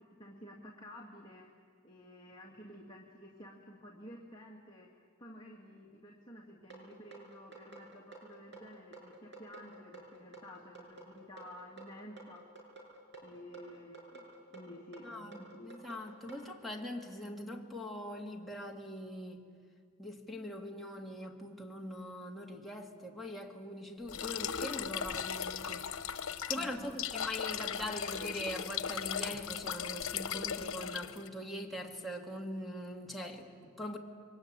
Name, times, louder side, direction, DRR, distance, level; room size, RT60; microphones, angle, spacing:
voice 1, 0.0-1.5 1.8-12.4 13.2-15.7 26.6-27.0, equal, 20° left, 2.2 m, -52 dB
sound 1, 6.7-16.5, right 3 dB, 60° right, 6.4 m, -51 dB
voice 2, 15.0-19.4 20.0-25.9 26.5-34.0, left 1 dB, ahead, 2.3 m, -42 dB
sound 2, 24.1-31.3, left 8 dB, 90° left, 1.0 m, -38 dB
27.5 x 23.0 x 9.0 m
head